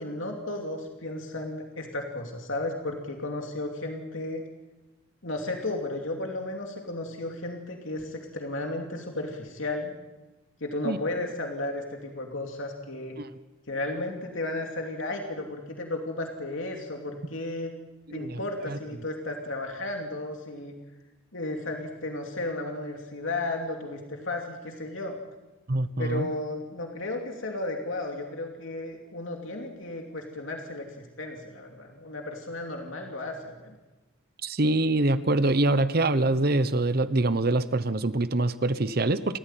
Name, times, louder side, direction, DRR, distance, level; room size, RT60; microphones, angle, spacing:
voice 1, 0.0-4.4 5.2-9.9 10.6-13.2 13.7-17.7 18.1-20.8 21.3-25.2 26.0-33.8, left 2 dB, 75° left, 2 dB, 2.8 m, -34 dB
voice 2, 18.1-18.4 18.7-18.8 25.7-26.3 34.4-39.4, right 2 dB, 50° right, 13 dB, 0.9 m, -25 dB
30.0 x 14.5 x 9.1 m, 1.1 s
head